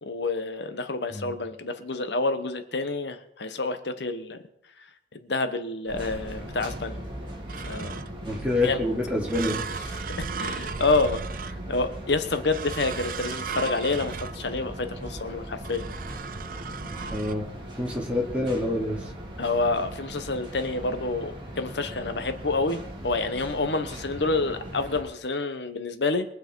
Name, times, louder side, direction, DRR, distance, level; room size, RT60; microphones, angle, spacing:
voice 1, 0.0-4.4 5.2-7.0 7.6-8.0 8.6-8.8 10.2-11.2 11.7-15.8 19.4-26.3, left 3 dB, 75° left, 9 dB, 1.1 m, -28 dB
sound 1, 5.9-25.0, right 1 dB, 25° right, 2.8 m, -39 dB
sound 2, 7.5-8.3 9.3-12.0 12.5-14.7 15.6-17.3, right 5 dB, 50° right, 0.5 m, -36 dB
voice 2, 8.2-9.6 10.0-10.1 17.1-17.5 17.8-19.1, left 1 dB, 5° right, -3 dB, 2.7 m, -27 dB
22.0 x 7.6 x 4.6 m, 0.77 s
head